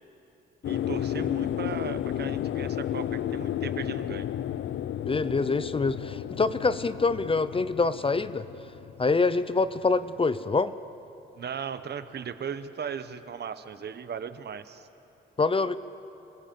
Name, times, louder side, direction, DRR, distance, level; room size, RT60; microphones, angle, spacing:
sound 1, 0.6-9.9 10.2-10.3, left 11 dB, 75° left, 0.6 m, -32 dB
voice 1, 0.7-4.2 11.3-14.9, right 7 dB, 55° right, 11 dB, 1.1 m, -37 dB
voice 2, 5.1-8.5 9.0-10.7 15.4-15.8, left 3 dB, 25° left, 14 dB, 0.7 m, -25 dB
26.5 x 16.5 x 7.7 m, 2.9 s
cardioid pair, 75°, 20 cm